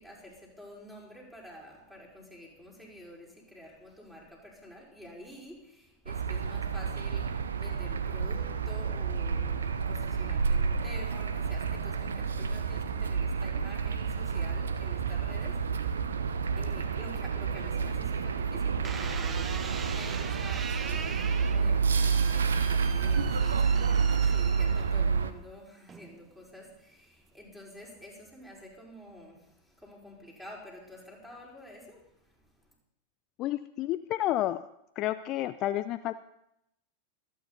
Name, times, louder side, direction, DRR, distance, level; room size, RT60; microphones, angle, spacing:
voice 1, 0.0-32.7, left 1 dB, 5° right, -3 dB, 5.2 m, -49 dB
sound 1, 6.1-25.3, right 5 dB, 70° right, 0.9 m, -29 dB
sound 2, 18.8-25.2 25.9-26.4, right 6 dB, 20° right, 0.8 m, -42 dB
voice 2, 33.4-34.6 35.0-36.1, left 14 dB, 35° left, 11 dB, 0.5 m, -30 dB
25.0 x 9.4 x 4.1 m, 0.78 s
figure-of-eight pair, 90°, 0 cm